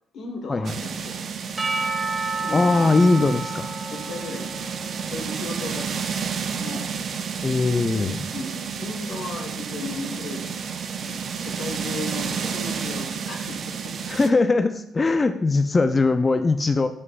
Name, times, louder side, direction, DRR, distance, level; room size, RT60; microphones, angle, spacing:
voice 1, 0.1-1.3 2.4-3.3 3.8-6.9 8.3-14.3, left 3 dB, 70° left, 1 dB, 1.2 m, -36 dB
sound 1, 0.6-14.3, right 6 dB, 55° right, 0.5 m, -31 dB
Percussion / Church bell, 1.6-5.9, right 3 dB, 20° right, 0.8 m, -31 dB
voice 2, 2.5-3.4 7.4-8.2 14.1-16.9, left 3 dB, 30° left, 9 dB, 0.3 m, -20 dB
8.5 x 4.8 x 2.3 m, 0.74 s
cardioid pair, 90°, 0 cm